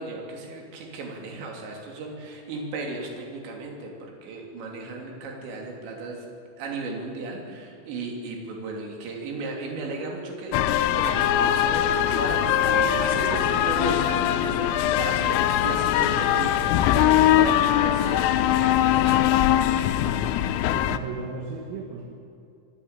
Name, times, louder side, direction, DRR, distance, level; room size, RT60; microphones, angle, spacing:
voice 1, 0.0-6.3 6.6-10.6 11.0-19.5, right 3 dB, 60° right, 0 dB, 5.0 m, -35 dB
sound 1, 10.5-21.0, left 11 dB, 80° left, 3.3 m, -21 dB
voice 2, 20.7-22.1, right 4 dB, 75° right, -1 dB, 4.5 m, -35 dB
26.0 x 12.5 x 9.0 m, 2.5 s
omnidirectional pair, 6.0 m